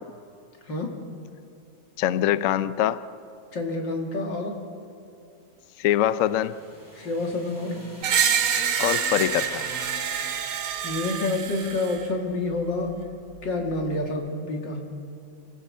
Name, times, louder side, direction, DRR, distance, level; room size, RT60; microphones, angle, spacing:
voice 1, 2.0-3.0 5.8-6.6 8.8-9.7, left 12 dB, 85° left, 0.7 m, -23 dB
voice 2, 3.5-4.5 6.9-7.8 10.8-13.0 13.4-14.8, left 2 dB, 60° left, 3.0 m, -28 dB
sound 1, 5.7-10.7, left 1 dB, 10° left, 5.7 m, -44 dB
Screech, 8.0-12.0, right 8 dB, 90° right, 2.0 m, -26 dB
27.0 x 15.5 x 7.5 m
omnidirectional pair, 2.2 m